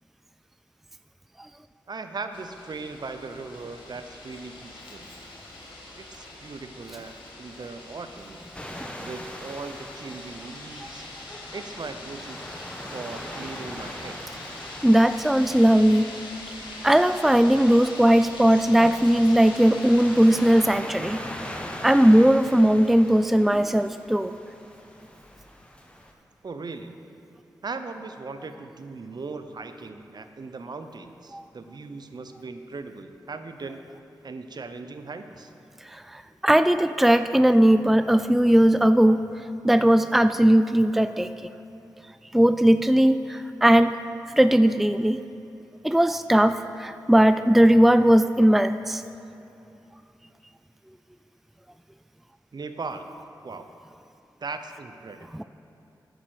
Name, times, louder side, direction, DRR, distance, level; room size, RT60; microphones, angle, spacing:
voice 1, 1.9-5.1 6.0-8.4 9.0-11.1 11.5-12.5 12.9-14.2 26.4-26.9 27.6-33.8 34.2-35.5 52.5-53.1 53.4-53.7 54.4-55.4, right 4 dB, 55° right, 8 dB, 0.8 m, -38 dB
sound 1, 2.3-20.7, left 2 dB, 85° left, 1.9 m, -42 dB
sound 2, 8.5-26.1, left 1 dB, 15° left, 1.4 m, -41 dB
voice 2, 14.8-16.1 16.8-21.2 21.8-24.4 31.3-31.5 35.9-39.2 39.6-41.5 42.3-43.9 44.3-45.2 45.8-49.0 55.3-55.4, right 1 dB, 5° right, 11 dB, 0.4 m, -18 dB
9.9 x 9.1 x 6.5 m, 2.8 s
cardioid pair, 40°, 8 cm